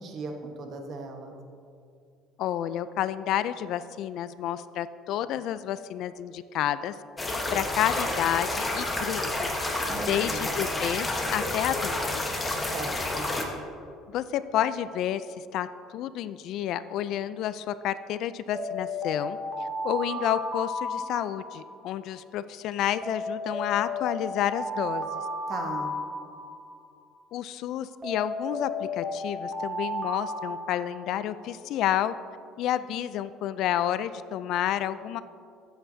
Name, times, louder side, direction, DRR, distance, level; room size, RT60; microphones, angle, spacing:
voice 1, 0.0-1.4 9.9-10.5 12.7-13.3 25.5-26.0, right 3 dB, 45° right, 3 dB, 1.2 m, -37 dB
voice 2, 2.4-9.5 10.1-12.4 14.1-25.2 27.3-32.1 32.6-35.2, left 11 dB, 60° left, 14 dB, 0.3 m, -30 dB
sound 1, 7.2-13.4, left 2 dB, 15° left, 1.0 m, -29 dB
Alarm, 18.5-21.8 23.0-26.8 28.0-31.3, left 1 dB, 10° right, 1.4 m, -33 dB
15.0 x 7.9 x 2.7 m, 2.5 s
cardioid pair, 135°, 0 cm